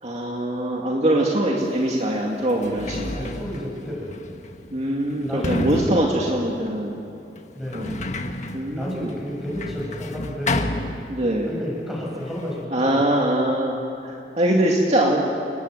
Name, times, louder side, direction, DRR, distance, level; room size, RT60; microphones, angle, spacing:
voice 1, 0.0-3.3 4.7-6.9 7.7-8.0 8.5-9.1 11.1-11.5 12.7-15.3, right 1 dB, 40° right, -1 dB, 2.3 m, -23 dB
Sliding door, 1.7-1.8 2.4-11.6 11.8-12.7, left 2 dB, 40° left, 1.4 m, -31 dB
voice 2, 3.1-4.2 5.2-6.2 7.5-8.0 8.7-10.6 11.5-13.0, left 1 dB, ahead, -3 dB, 7.0 m, -32 dB
29.5 x 19.5 x 8.0 m, 2.7 s
head